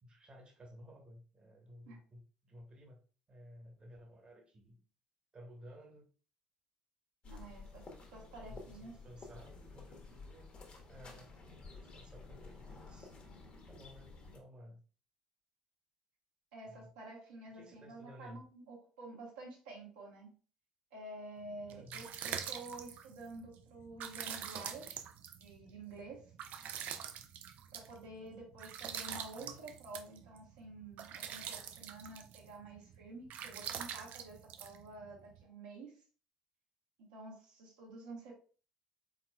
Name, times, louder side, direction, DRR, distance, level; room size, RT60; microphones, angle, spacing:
voice 1, 0.0-3.0 3.3-4.8 5.3-6.1 7.5-7.7 8.5-10.5 10.9-13.1 13.7-14.8 16.7-16.9 17.5-18.4 21.6-22.1 29.3-29.8, equal, 30° right, 2 dB, 1.2 m, -56 dB
sound 1, 7.2-14.4, left 3 dB, 35° left, 1.3 m, -52 dB
voice 2, 7.2-7.8 8.1-8.9 16.5-20.3 20.9-25.0 25.4-26.2 27.7-35.9 37.0-38.3, right 2 dB, 70° right, -3 dB, 1.3 m, -50 dB
sound 2, 21.5-35.4, right 9 dB, 55° right, 0.4 m, -45 dB
4.2 x 3.9 x 2.3 m, 0.38 s
figure-of-eight pair, 55°, 3 cm